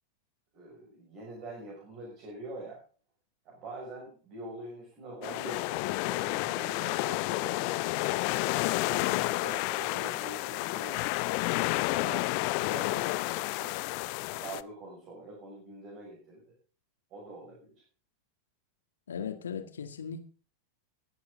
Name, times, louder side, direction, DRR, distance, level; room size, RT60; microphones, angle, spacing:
voice 1, 0.5-2.8 3.4-8.0 8.8-11.0 11.9-13.8 14.2-16.5 17.1-17.7, right 2 dB, 40° right, -2 dB, 6.2 m, -45 dB
sound 1, 5.2-14.6, left 21 dB, 45° left, 0.6 m, -30 dB
voice 2, 19.1-20.2, left 7 dB, 65° left, 7 dB, 2.0 m, -37 dB
21.5 x 8.6 x 3.9 m, 0.39 s
figure-of-eight pair, 90°, 0 cm